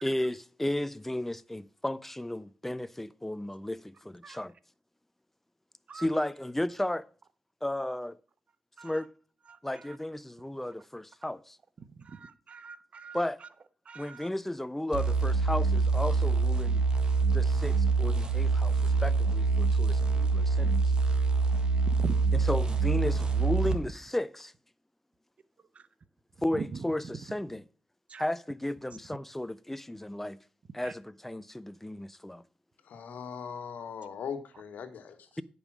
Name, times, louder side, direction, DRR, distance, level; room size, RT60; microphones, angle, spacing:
voice 1, 0.0-4.5 5.9-7.1 7.6-8.2 8.8-9.1 9.6-11.6 13.1-13.4 14.0-16.8 17.3-20.8 22.3-24.5 26.4-27.6 28.2-30.4 30.7-32.4, left 1 dB, 10° left, 0.5 m, -34 dB
voice 2, 12.1-13.2 13.9-14.3 22.0-22.1 28.1-28.2, right 5 dB, 50° right, 0.7 m, -42 dB
sound 1, 14.9-23.8, right 4 dB, 30° right, 1.5 m, -25 dB
voice 3, 32.8-35.3, left 7 dB, 80° left, 1.3 m, -40 dB
9.7 x 5.4 x 6.0 m
cardioid pair, 85°, 3 cm